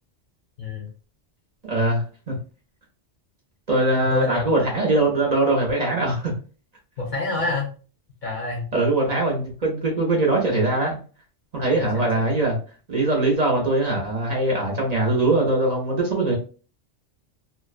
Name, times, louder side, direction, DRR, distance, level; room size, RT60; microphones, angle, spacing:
voice 1, 0.6-0.9 4.0-4.4 7.0-7.7 8.2-8.7 11.8-12.3, left 3 dB, 55° left, -1 dB, 0.6 m, -27 dB
voice 2, 1.6-2.4 3.7-6.3 8.7-11.0 11.5-12.6 12.9-16.3, right 2 dB, 45° right, -2 dB, 0.6 m, -22 dB
2.5 x 2.1 x 2.3 m, 0.37 s
omnidirectional pair, 1.2 m